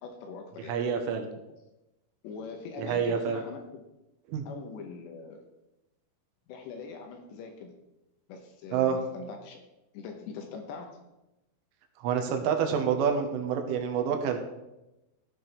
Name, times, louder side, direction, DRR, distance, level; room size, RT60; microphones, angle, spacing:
voice 1, 0.0-0.8 2.2-3.8 4.5-5.5 6.5-7.8 8.3-9.6 9.9-11.0, left 5 dB, 75° left, 4 dB, 2.8 m, -42 dB
voice 2, 0.7-1.3 2.8-3.4 4.3-4.5 8.7-9.0 12.0-14.4, right 7 dB, 90° right, 5 dB, 3.6 m, -27 dB
16.0 x 7.6 x 3.3 m, 0.97 s
omnidirectional pair, 5.6 m